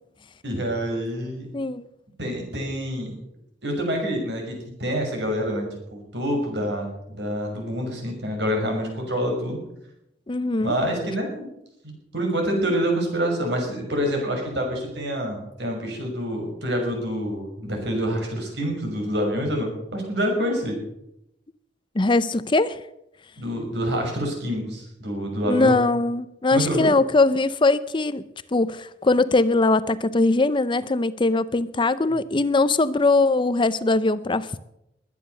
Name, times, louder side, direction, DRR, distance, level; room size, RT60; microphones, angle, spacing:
voice 1, 0.4-1.5 2.2-3.1 3.6-6.9 7.2-9.6 10.6-11.5 12.1-20.8 23.4-25.8 26.5-26.9, equal, 65° right, 2 dB, 6.0 m, -27 dB
voice 2, 10.3-10.7 22.0-22.8 25.5-28.2 28.5-34.6, left 3 dB, 25° left, 15 dB, 0.5 m, -21 dB
21.0 x 9.6 x 6.9 m, 0.82 s
head